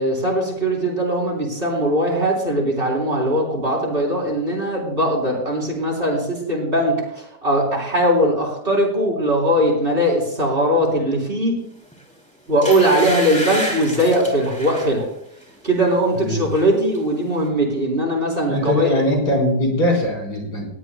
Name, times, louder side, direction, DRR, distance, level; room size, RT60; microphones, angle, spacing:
voice 1, 0.0-11.6 12.5-15.1 15.6-18.9, equal, 30° right, -1 dB, 3.7 m, -20 dB
sound 1, 11.9-12.1 12.6-14.9 15.4-15.6 15.9-16.7 16.9-17.0, equal, 5° left, 2.7 m, -30 dB
voice 2, 16.1-16.5 18.5-20.7, left 1 dB, 85° left, -1 dB, 4.7 m, -21 dB
19.0 x 16.5 x 2.3 m, 0.77 s
omnidirectional pair, 1.8 m